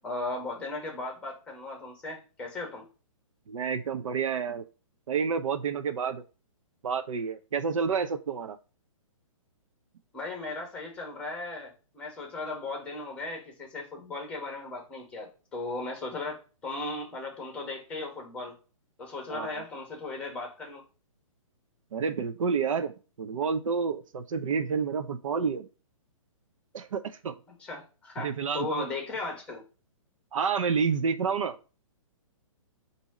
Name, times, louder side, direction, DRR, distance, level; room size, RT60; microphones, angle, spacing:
voice 1, 0.0-2.9 10.1-18.5 19.0-20.8 27.6-29.6, left 3 dB, 5° left, 1 dB, 1.2 m, -37 dB
voice 2, 3.5-4.6 5.1-6.2 6.8-8.6 19.3-19.6 21.9-25.7 26.7-27.3 28.2-28.9 30.3-31.6, right 6 dB, 70° right, 9 dB, 0.6 m, -29 dB
4.1 x 2.7 x 4.8 m, 0.35 s
hypercardioid pair, 160°, 17 cm